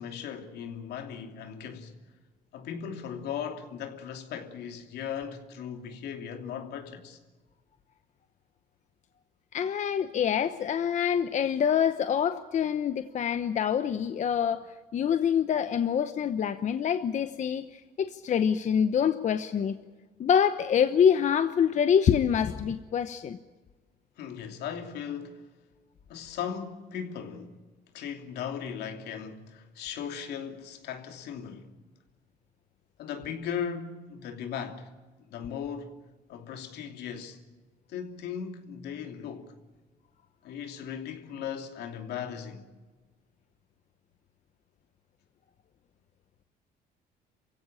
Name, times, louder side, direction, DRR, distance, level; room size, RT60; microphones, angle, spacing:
voice 1, 0.0-1.9 2.5-7.2 24.2-25.5 26.1-27.5 27.9-31.7 33.0-34.9 35.3-36.0 36.3-37.4 37.9-39.5 40.4-42.7, left 8 dB, 75° left, 2.9 m, -37 dB
voice 2, 9.5-14.6 14.9-17.7 18.0-19.8 20.2-23.4, left 8 dB, 45° left, 1.0 m, -25 dB
28.0 x 16.0 x 8.8 m
cardioid pair, 110°, 17 cm